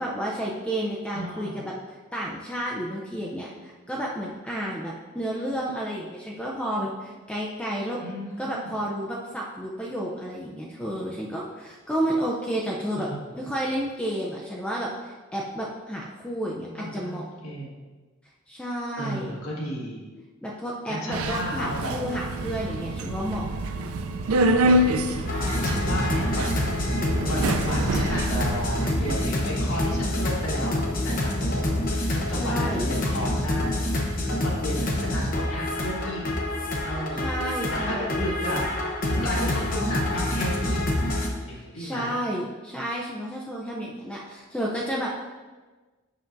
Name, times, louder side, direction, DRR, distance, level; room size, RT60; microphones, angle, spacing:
voice 1, 0.0-8.0 8.4-13.1 13.3-17.2 18.5-19.3 20.4-23.5 32.4-32.9 37.1-38.6 41.5-45.2, right 1 dB, 5° left, -4 dB, 0.5 m, -31 dB
voice 2, 1.1-1.6 8.0-8.7 12.9-13.2 16.5-17.8 19.0-20.0 20.9-22.0 24.5-25.2 25.5-26.6 27.3-33.8 34.4-36.2 36.8-37.3 37.7-38.6 39.0-40.8 41.5-42.1, equal, 75° left, -4 dB, 1.7 m, -33 dB
Subway metro underground, 21.1-29.2, right 1 dB, 85° right, 0.4 m, -27 dB
sound 1, 25.2-41.3, left 1 dB, 40° left, 0.9 m, -27 dB
7.6 x 5.8 x 2.6 m, 1.3 s
head